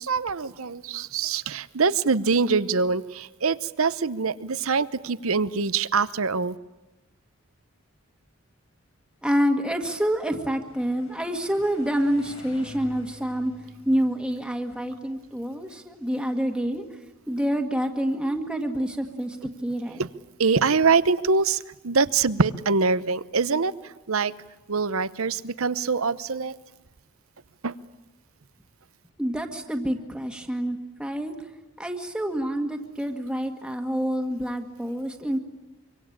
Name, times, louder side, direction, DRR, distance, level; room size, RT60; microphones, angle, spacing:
voice 1, 0.0-6.5 20.0-20.1 20.4-24.3 24.7-26.5 27.6-27.7, right 4 dB, 70° right, 16 dB, 0.8 m, -24 dB
voice 2, 9.2-13.5 13.9-16.8 17.3-20.0 29.2-31.3 31.8-35.4, equal, 5° right, 3 dB, 1.8 m, -27 dB
sound 1, 9.7-15.9, left 2 dB, 60° left, 5.0 m, -49 dB
25.0 x 25.0 x 8.7 m, 1.0 s
head